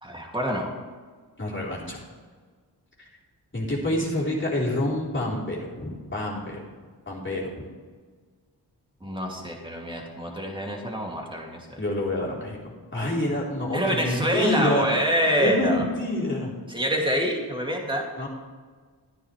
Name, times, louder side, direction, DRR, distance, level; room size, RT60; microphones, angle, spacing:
voice 1, 0.0-0.7 9.0-11.8 13.7-15.8 16.7-18.1, equal, 10° right, 0 dB, 2.5 m, -26 dB
voice 2, 1.4-2.0 3.0-3.1 3.5-6.6 7.1-7.5 11.8-15.0 15.4-16.5 18.2-18.3, left 1 dB, 30° left, -6 dB, 3.7 m, -27 dB
13.5 x 9.6 x 3.3 m, 1.5 s
cardioid pair, 55°, 41 cm